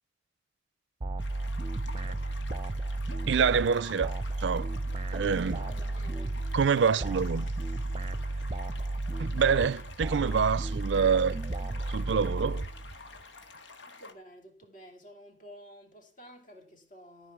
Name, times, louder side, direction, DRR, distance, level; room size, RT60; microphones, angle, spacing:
sound 1, 1.0-13.2, right 2 dB, 30° right, 0.6 m, -33 dB
sound 2, 1.2-14.1, left 3 dB, 90° left, 1.7 m, -49 dB
voice 1, 3.3-4.7 5.1-5.6 6.5-7.4 9.2-11.4 11.9-12.6, right 6 dB, 75° right, 0.4 m, -26 dB
voice 2, 5.5-7.3 13.8-17.3, equal, 45° left, 2.7 m, -52 dB
13.5 x 5.3 x 7.1 m
head